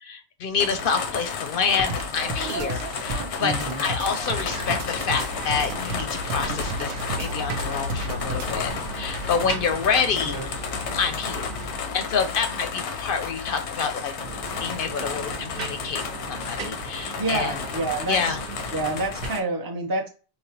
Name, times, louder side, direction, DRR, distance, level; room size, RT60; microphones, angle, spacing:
voice 1, 0.0-10.4 10.9-11.6 11.9-14.1 14.6-16.0 16.3-17.6 18.1-18.4, left 6 dB, 60° left, 8 dB, 0.6 m, -27 dB
sound 1, 0.6-19.4, left 5 dB, 85° left, 0.9 m, -32 dB
sound 2, 1.8-1.9 2.2-3.8 4.2-12.2 14.0-19.3, right 4 dB, 55° right, 0.9 m, -38 dB
sound 3, 1.9-8.7, right 2 dB, 85° right, 0.9 m, -33 dB
voice 2, 3.4-3.8 10.3-10.5 17.2-18.4 18.7-20.1, right 2 dB, 25° right, 2 dB, 0.5 m, -28 dB
4.8 x 2.2 x 2.8 m, 0.37 s
omnidirectional pair, 1.1 m